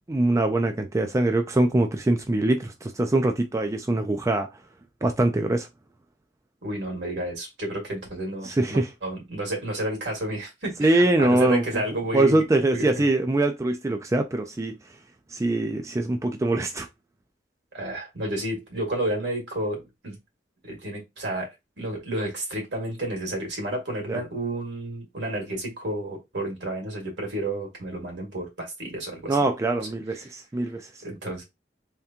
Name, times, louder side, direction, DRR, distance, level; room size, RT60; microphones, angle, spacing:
voice 1, 0.1-4.5 5.0-5.7 8.4-8.9 10.8-11.6 12.1-14.8 15.3-16.9 24.1-24.2 29.3-30.9, right 2 dB, 15° right, 0.4 m, -23 dB
voice 2, 6.6-12.4 12.7-13.1 17.7-20.2 20.6-21.5 21.8-29.4 30.2-30.3 31.0-31.4, right 1 dB, 75° right, 2.0 m, -31 dB
3.6 x 3.4 x 2.8 m
head